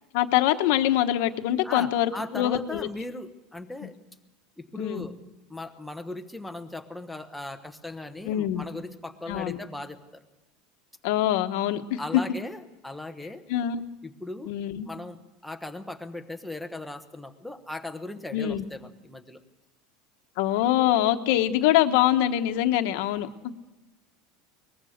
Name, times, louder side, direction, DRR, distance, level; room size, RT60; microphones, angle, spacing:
voice 1, 0.1-2.8 3.8-3.9 4.8-5.1 8.2-8.7 9.3-9.6 11.0-12.0 13.5-13.9 14.5-14.9 18.3-18.7 20.4-23.3, left 12 dB, 65° left, 8 dB, 1.2 m, -24 dB
voice 2, 1.6-3.9 4.6-5.2 5.5-10.2 12.0-13.4 14.0-14.5 14.9-19.4, left 2 dB, ahead, 6 dB, 1.1 m, -38 dB
23.0 x 20.0 x 6.6 m, 1.0 s
cardioid pair, 165°, 0 cm